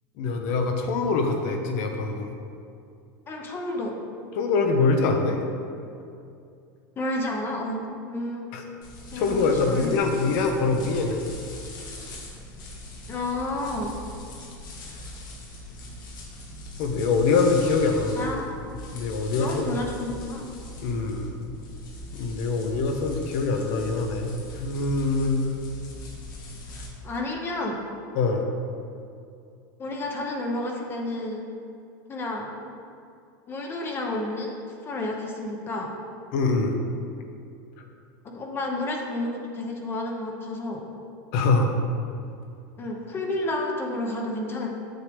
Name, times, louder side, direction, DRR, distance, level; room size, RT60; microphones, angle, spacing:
voice 1, 0.2-2.3 4.4-5.4 8.5-8.6 9.1-11.2 16.8-18.2 18.9-19.8 20.8-21.3 22.1-25.6 28.1-28.5 36.3-36.8 37.8-37.9 41.3-41.7, left 3 dB, 55° left, 4 dB, 1.0 m, -24 dB
voice 2, 3.3-4.0 7.0-8.5 9.1-9.9 13.1-13.9 18.2-18.5 19.4-20.5 27.0-27.8 29.8-31.5 32.1-32.5 33.5-34.6 34.8-35.9 38.2-40.8 42.8-44.7, left 2 dB, 20° left, 1 dB, 0.8 m, -30 dB
sound 1, 8.8-26.9, left 1 dB, 90° left, 1.7 m, -41 dB
7.7 x 7.4 x 3.5 m, 2.5 s
supercardioid pair, 155°, 10 cm